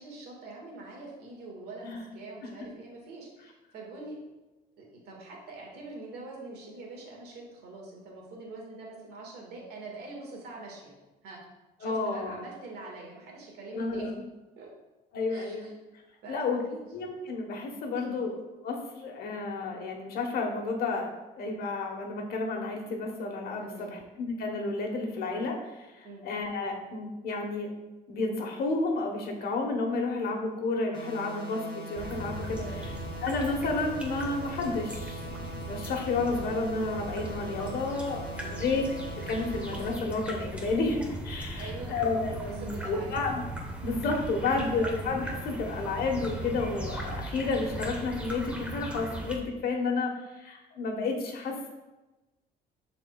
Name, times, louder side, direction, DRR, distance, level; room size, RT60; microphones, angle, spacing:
voice 1, 0.0-4.2 4.8-10.9 11.2-11.4 11.8-14.1 14.6-14.7 15.3-15.7 16.2-16.9 17.9-18.2 23.6-23.9 26.0-26.2 32.6-33.0 38.3-38.6 41.6-41.9 42.6-43.2, right 2 dB, 75° right, -1 dB, 1.9 m, -44 dB
voice 2, 11.8-12.4 13.7-14.1 15.1-15.7 16.3-16.6 16.9-18.4 18.6-27.7 28.1-32.6 33.2-38.2 38.5-38.8 39.3-43.4 43.8-51.7, left 3 dB, 65° left, 2 dB, 1.2 m, -31 dB
sound 1, 30.9-39.9, right 1 dB, 25° left, 1.6 m, -42 dB
sound 2, 31.9-49.3, right 1 dB, 5° right, 1.1 m, -38 dB
10.5 x 4.2 x 2.3 m, 1.1 s
cardioid pair, 110°, 17 cm